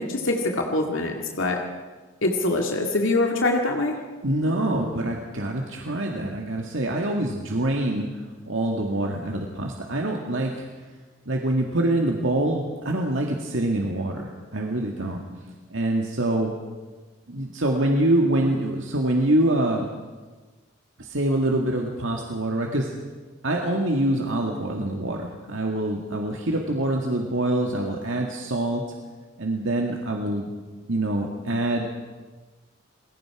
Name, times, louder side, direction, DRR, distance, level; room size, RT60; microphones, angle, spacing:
voice 1, 0.0-1.6 2.2-4.0, left 2 dB, 70° left, 1 dB, 2.1 m, -24 dB
voice 2, 4.2-10.6 11.3-15.2 15.7-16.5 17.3-19.9 21.0-22.9 23.4-28.8 29.4-30.5 30.9-31.9, right 1 dB, 70° right, 1 dB, 2.0 m, -25 dB
28.5 x 21.5 x 4.9 m, 1.3 s
head